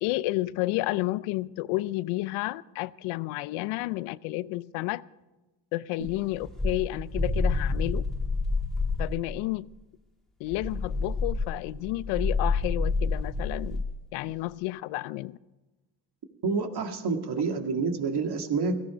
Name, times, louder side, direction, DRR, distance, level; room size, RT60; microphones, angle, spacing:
voice 1, 0.0-5.0 5.7-8.0 9.0-9.7 10.4-13.8 14.1-15.4, left 19 dB, 85° left, 19 dB, 0.6 m, -31 dB
sound 1, 6.0-9.3 10.5-13.9, left 3 dB, ahead, 2.7 m, -28 dB
voice 2, 16.4-18.8, right 4 dB, 55° right, 5 dB, 2.2 m, -28 dB
17.0 x 15.0 x 5.1 m, 1.1 s
supercardioid pair, 60°, 48 cm